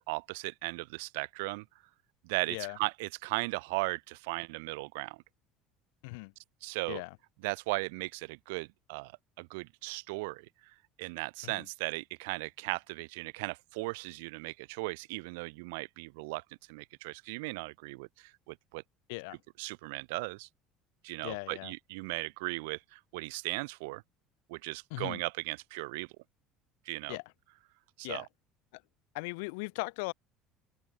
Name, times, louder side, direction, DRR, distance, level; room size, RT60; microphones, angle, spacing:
voice 1, 0.0-1.6 2.2-5.2 6.6-7.0 7.4-9.1 9.4-16.4 16.7-18.8 19.6-20.5 21.0-24.0 24.5-26.1 26.8-27.2 28.0-28.2, right 26 dB, 90° right, 1.1 m, -37 dB
voice 2, 21.2-21.7 24.9-25.2 27.1-27.2 28.0-28.3 28.7-28.8 29.1-30.1, left 29 dB, 85° left, 0.5 m, -38 dB
cardioid pair, 130°, 0 cm